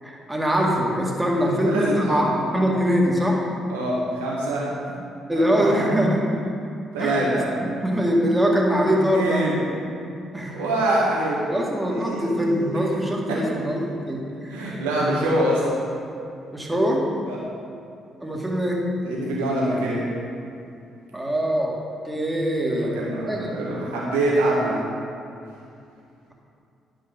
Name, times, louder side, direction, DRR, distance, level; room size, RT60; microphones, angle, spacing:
voice 1, 0.0-3.4 5.3-6.4 7.0-9.5 10.3-10.6 11.5-15.0 16.5-17.0 18.2-18.8 21.1-21.8 22.0-23.0 23.3-23.5, equal, 10° right, -2 dB, 2.0 m, -23 dB
voice 2, 1.4-2.2 3.7-4.7 5.3-5.8 6.9-7.5 9.1-9.6 10.5-11.4 12.0-12.7 13.3-13.6 14.5-15.6 17.3-17.4 19.0-20.0 22.7-24.8, right 1 dB, 80° right, -6 dB, 1.7 m, -25 dB
11.0 x 5.5 x 5.3 m, 2.5 s
figure-of-eight pair, 45°, 0 cm